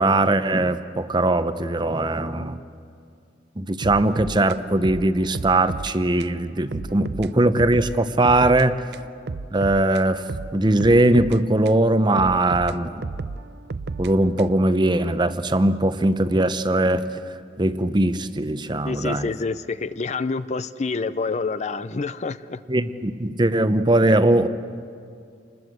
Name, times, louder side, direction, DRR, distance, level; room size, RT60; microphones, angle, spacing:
voice 1, 0.0-2.6 3.6-8.8 9.5-12.9 14.0-17.0 17.6-19.4 22.7-24.5, right 1 dB, 25° right, 11 dB, 0.8 m, -20 dB
sound 1, 3.8-5.9 6.2-6.4 6.7-8.7 8.9-11.8 12.2-14.7, right 3 dB, 65° right, 0.6 m, -33 dB
voice 2, 18.8-22.6, left 4 dB, 40° left, 14 dB, 0.5 m, -27 dB
27.5 x 20.5 x 8.0 m, 2.4 s
head